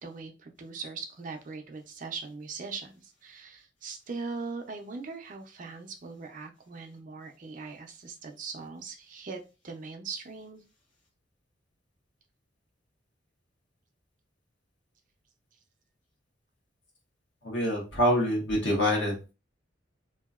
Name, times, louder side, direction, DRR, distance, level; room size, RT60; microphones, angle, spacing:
voice 1, 0.0-10.6, right 4 dB, 45° right, 4 dB, 0.5 m, -40 dB
voice 2, 17.4-19.3, equal, 70° left, -1 dB, 1.3 m, -26 dB
2.8 x 2.6 x 2.3 m, 0.30 s
head